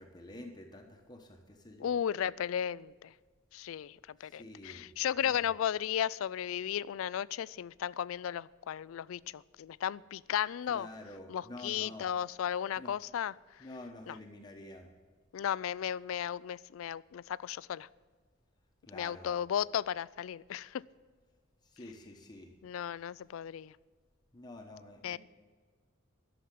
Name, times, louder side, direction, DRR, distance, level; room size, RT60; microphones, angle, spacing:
voice 1, 0.0-1.9 4.2-4.9 5.2-5.5 10.7-12.1 12.8-12.9 13.6-14.9 18.9-19.3 21.7-22.5 24.3-25.2, left 1 dB, 20° left, 3 dB, 1.0 m, -48 dB
voice 2, 1.8-3.1 3.5-10.9 11.3-13.3 14.1-14.2 15.3-17.9 18.9-20.8 22.6-23.7 25.0-25.2, left 9 dB, 70° left, 20 dB, 0.3 m, -35 dB
12.0 x 7.1 x 9.1 m, 1.5 s
head